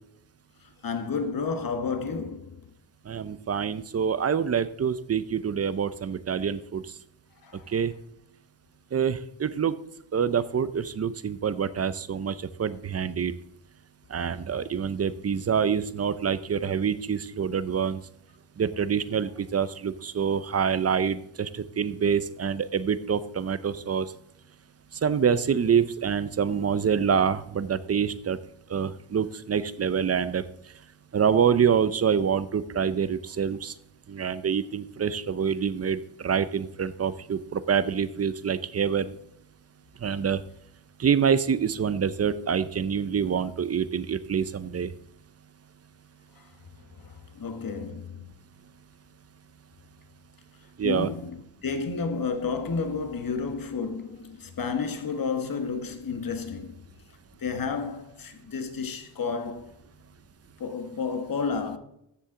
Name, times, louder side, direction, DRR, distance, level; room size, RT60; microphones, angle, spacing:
voice 1, 0.8-2.6 7.4-7.6 47.3-48.3 50.8-56.8 57.4-59.7 60.6-61.8, left 5 dB, 50° left, 1.4 m, -31 dB
voice 2, 3.1-6.8 7.7-7.9 8.9-9.7 10.1-13.3 14.1-18.0 18.6-24.0 25.0-28.4 28.7-30.4 31.1-33.7 34.1-39.1 40.0-40.4 41.0-44.9 50.8-51.1, right 7 dB, 35° right, 0.6 m, -26 dB
14.0 x 7.3 x 3.7 m
wide cardioid pair, 125°, 45 cm